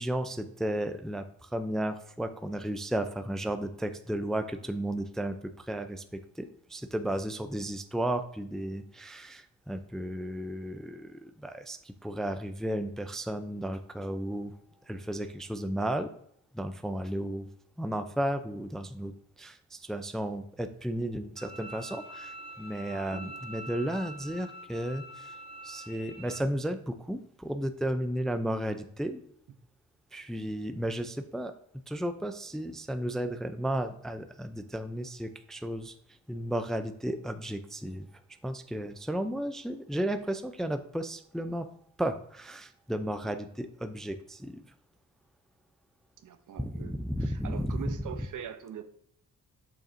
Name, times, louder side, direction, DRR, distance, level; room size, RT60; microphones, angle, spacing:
voice 1, 0.0-14.5 14.9-16.1 16.5-17.5 17.8-19.1 19.4-25.3 25.6-29.2 30.1-31.5 31.9-35.9 36.3-38.1 38.4-41.7 42.0-44.6 46.6-47.9, right 1 dB, ahead, 9 dB, 0.4 m, -34 dB
Bowed string instrument, 21.4-26.4, right 1 dB, 15° right, 1.3 m, -45 dB
voice 2, 23.1-23.4 43.1-43.3 46.2-46.9 47.2-48.8, right 9 dB, 65° right, 9 dB, 0.8 m, -43 dB
7.0 x 5.4 x 2.6 m, 0.69 s
cardioid pair, 95°, 33 cm